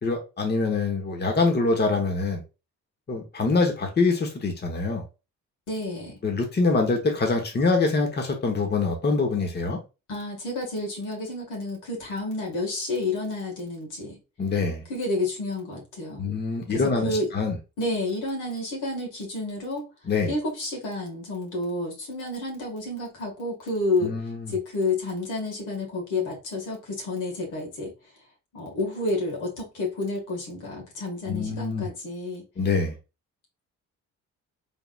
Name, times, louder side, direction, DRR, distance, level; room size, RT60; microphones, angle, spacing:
voice 1, 0.0-2.4 3.1-5.0 6.2-9.8 14.4-14.8 16.2-17.6 20.1-20.3 24.0-24.5 31.3-31.9 32.6-33.0, left 3 dB, 35° left, 1.1 m, -24 dB
voice 2, 5.7-6.1 10.1-14.2 14.9-16.3 16.7-17.3 17.8-19.8 20.3-24.1 24.5-27.9 28.5-32.4, left 2 dB, 85° left, 1.9 m, -30 dB
3.8 x 3.6 x 2.4 m
cardioid pair, 90°, 30 cm